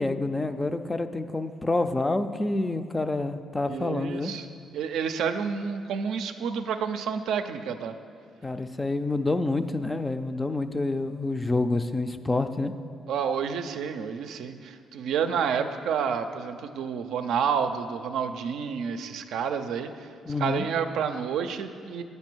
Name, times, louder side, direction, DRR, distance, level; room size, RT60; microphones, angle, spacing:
voice 1, 0.0-4.3 8.4-12.7 20.3-20.6, left 2 dB, 20° left, 9 dB, 0.4 m, -28 dB
voice 2, 3.7-4.5 4.7-8.0 13.1-20.1 20.4-22.0, right 7 dB, 80° right, 7 dB, 0.4 m, -29 dB
8.2 x 5.4 x 6.1 m, 2.2 s
cardioid pair, 90°, 0 cm